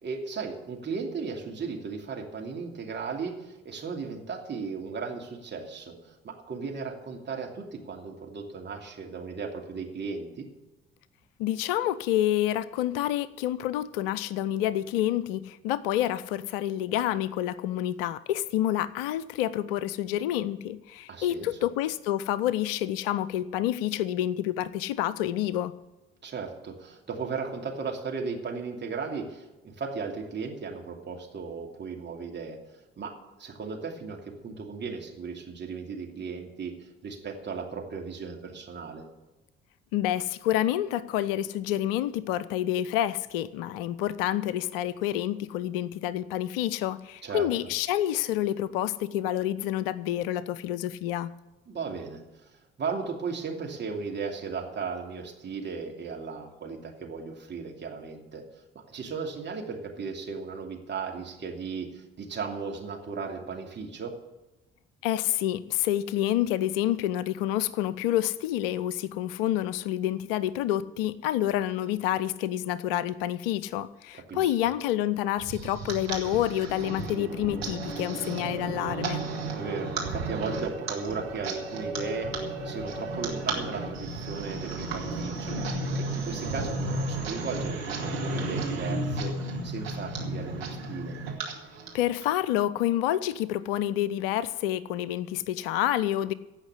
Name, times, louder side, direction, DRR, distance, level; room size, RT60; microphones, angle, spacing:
voice 1, 0.0-10.5 21.1-21.5 26.2-32.6 33.0-39.1 47.2-47.5 51.7-58.4 58.9-64.1 74.1-74.7 79.5-91.2, right 5 dB, 35° right, 2 dB, 2.7 m, -36 dB
voice 2, 11.4-25.7 39.9-51.3 65.0-79.2 91.9-96.3, left 12 dB, 65° left, 18 dB, 0.6 m, -28 dB
sound 1, 75.4-92.2, right 2 dB, 80° right, 1.9 m, -33 dB
16.0 x 5.8 x 9.9 m, 1.1 s
figure-of-eight pair, 50°, 30 cm